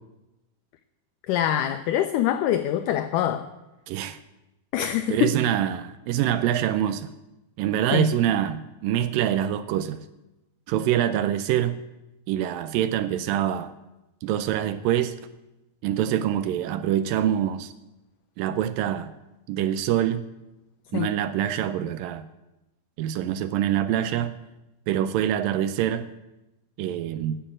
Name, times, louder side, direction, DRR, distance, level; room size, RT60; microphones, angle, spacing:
voice 1, 1.3-3.5 4.7-5.4 7.9-8.0 20.9-21.1, left 11 dB, 85° left, 9 dB, 1.8 m, -24 dB
voice 2, 3.9-4.2 5.1-7.1 7.6-10.1 10.7-11.8 12.3-13.7 14.2-15.2 15.8-17.7 18.4-19.1 19.5-20.2 20.9-22.3 23.0-24.3 24.9-26.1 26.8-27.4, right 11 dB, 80° right, 12 dB, 2.1 m, -25 dB
12.5 x 7.2 x 8.7 m, 0.97 s
omnidirectional pair, 4.3 m